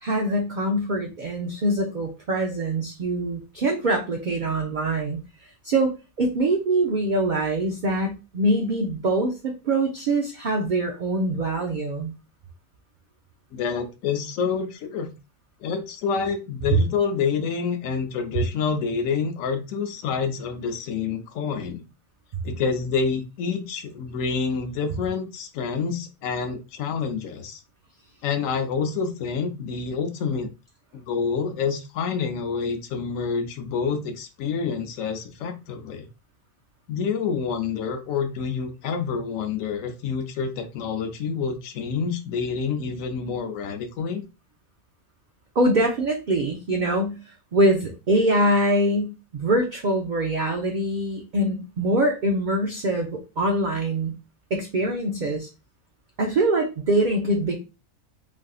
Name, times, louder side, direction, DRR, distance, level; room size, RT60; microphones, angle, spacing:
voice 1, 0.0-5.2 5.6-5.9 6.2-12.1 45.6-47.2 47.5-54.2 54.5-55.5 56.2-57.6, right 1 dB, 55° right, 2 dB, 0.5 m, -24 dB
voice 2, 13.5-15.1 15.6-21.8 22.4-27.6 28.2-30.5 30.9-36.1 36.9-44.2, left 5 dB, 85° left, 6 dB, 1.0 m, -27 dB
3.3 x 2.5 x 2.3 m, 0.29 s
omnidirectional pair, 1.4 m